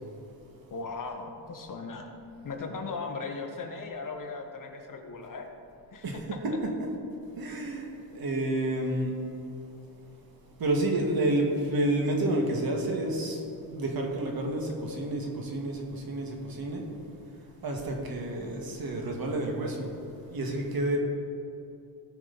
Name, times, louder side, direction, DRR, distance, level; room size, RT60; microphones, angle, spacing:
voice 1, 0.7-2.1 2.4-5.5 5.9-6.0, left 4 dB, 45° left, 3 dB, 1.4 m, -37 dB
voice 2, 6.4-6.9 7.4-9.2 10.6-16.9 17.6-19.9 20.2-21.0, right 1 dB, 50° right, 1 dB, 1.8 m, -30 dB
17.5 x 6.0 x 4.1 m, 2.7 s
cardioid pair, 125°, 46 cm